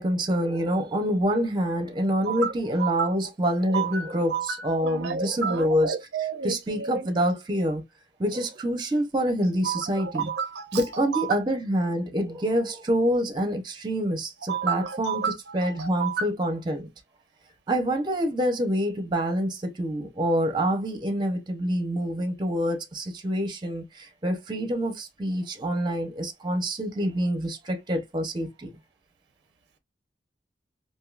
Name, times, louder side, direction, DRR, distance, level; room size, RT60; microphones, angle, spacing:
voice 1, 0.0-6.0 6.4-7.8 8.2-10.3 10.7-15.2 15.5-16.9 17.7-28.7, equal, 25° right, 0.7 m, -26 dB
voice 2, 2.8-3.1 3.7-7.1 9.6-11.4 14.5-16.3, right 6 dB, 70° right, 0.4 m, -31 dB
3.5 x 2.7 x 2.3 m
head